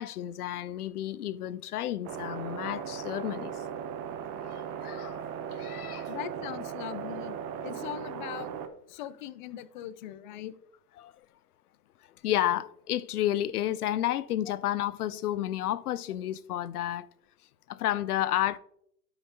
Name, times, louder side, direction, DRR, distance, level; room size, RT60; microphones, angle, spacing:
voice 1, 0.0-3.5 4.4-5.2 5.5-6.1 11.0-11.1 12.2-17.1 17.7-18.6, left 12 dB, 75° left, 0.7 m, -31 dB
sound 1, 2.0-8.7, right 8 dB, 35° right, 0.9 m, -37 dB
voice 2, 6.1-8.5 8.9-10.5, left 13 dB, 35° left, 0.5 m, -40 dB
12.0 x 5.8 x 2.9 m
hypercardioid pair, 135°, 45 cm